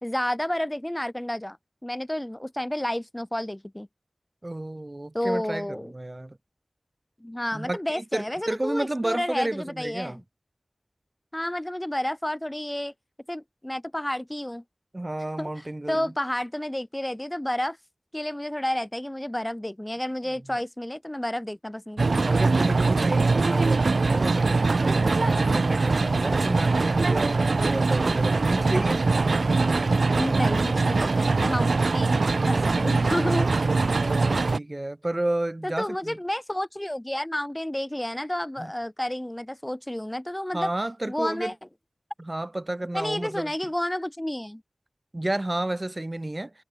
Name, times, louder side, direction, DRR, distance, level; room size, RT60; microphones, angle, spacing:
voice 1, 0.0-1.6 1.8-3.9 5.1-5.9 7.2-10.2 11.3-12.9 13.3-14.6 15.4-17.8 18.1-22.3 25.2-25.6 30.1-32.2 32.5-33.5 35.6-40.7 41.1-41.5 42.9-44.6, left 1 dB, 15° left, 2.0 m, -30 dB
voice 2, 4.4-6.4 7.5-10.2 14.9-16.1 20.5-20.6 22.2-29.1 33.9-36.2 38.6-38.7 40.5-41.5 42.2-43.5 45.1-46.5, right 1 dB, 30° right, 5.4 m, -31 dB
sound 1, 22.0-34.6, right 3 dB, 75° right, 0.5 m, -22 dB
wide cardioid pair, 45°, 0 cm